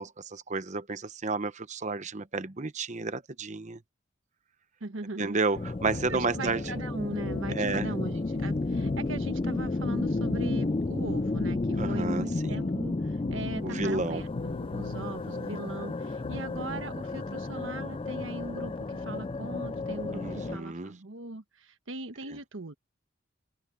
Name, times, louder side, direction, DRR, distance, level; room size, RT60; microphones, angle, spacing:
voice 1, 0.0-3.8 5.2-6.6 7.5-7.9 11.8-12.6 13.6-14.2 20.1-20.9 22.3-22.4, right 3 dB, 35° right, 0.9 m, -31 dB
voice 2, 4.8-5.4 6.1-22.7, right 2 dB, 80° right, 1.3 m, -40 dB
sound 1, 5.5-20.6, left 2 dB, 25° left, 0.4 m, -32 dB
sound 2, 5.8-16.4, left 3 dB, 90° left, 0.7 m, -42 dB
open air
head